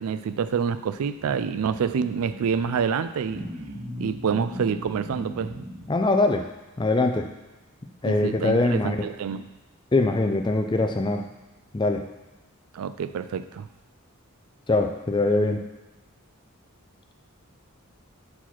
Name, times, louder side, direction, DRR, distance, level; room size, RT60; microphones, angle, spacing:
voice 1, 0.0-3.5 4.0-5.6 8.0-9.5 12.7-13.7, right 6 dB, 75° right, 12 dB, 0.3 m, -27 dB
sound 1, 1.2-6.3, equal, 45° right, 1.7 m, -39 dB
voice 2, 5.9-6.4 6.8-7.3 8.0-9.0 9.9-11.3 11.7-12.1 14.7-15.7, left 2 dB, 20° left, 5 dB, 0.4 m, -22 dB
4.7 x 4.3 x 5.9 m, 1.1 s
head